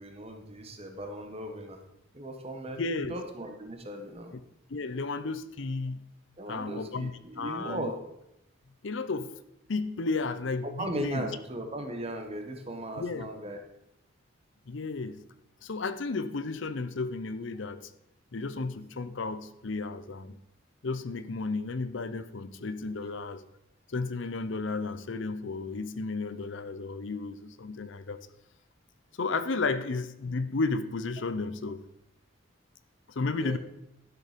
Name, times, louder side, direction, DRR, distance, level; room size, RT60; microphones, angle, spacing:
voice 1, 0.0-1.8 2.1-4.3 6.4-8.0 10.6-13.6 33.4-33.6, right 1 dB, 30° right, 4 dB, 1.3 m, -37 dB
voice 2, 2.8-3.1 4.7-6.1 6.5-7.1 7.4-7.9 8.8-9.3 9.7-11.3 13.0-13.3 14.7-15.2 15.6-17.9 18.3-20.4 20.8-23.4 23.9-28.2 29.2-31.8 33.2-33.6, left 3 dB, 65° left, 13 dB, 0.6 m, -33 dB
12.0 x 6.9 x 5.1 m, 0.85 s
head